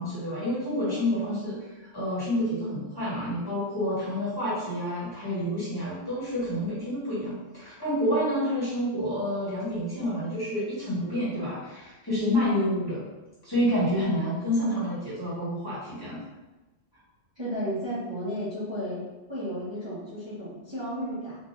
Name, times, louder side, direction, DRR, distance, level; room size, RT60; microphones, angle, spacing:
voice 1, 0.0-13.0 13.4-16.2, equal, 20° left, -12 dB, 1.3 m, -28 dB
voice 2, 17.3-19.0 19.3-21.4, equal, 25° right, -13 dB, 1.1 m, -33 dB
3.8 x 2.5 x 2.5 m, 1.1 s
omnidirectional pair, 1.2 m